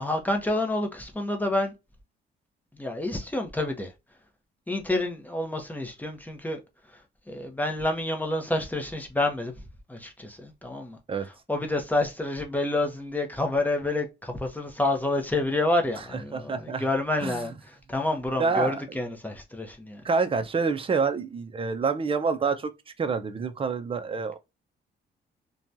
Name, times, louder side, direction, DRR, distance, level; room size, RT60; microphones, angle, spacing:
voice 1, 0.0-1.7 2.7-3.9 4.7-6.6 7.3-9.5 9.9-11.0 11.5-20.0, left 2 dB, 10° left, 0.8 m, -28 dB
voice 2, 16.3-16.8 17.2-17.4 18.4-18.8 20.0-22.7 23.0-24.4, right 5 dB, 25° right, 0.5 m, -27 dB
2.9 x 2.3 x 2.5 m
cardioid pair, 90°, 20 cm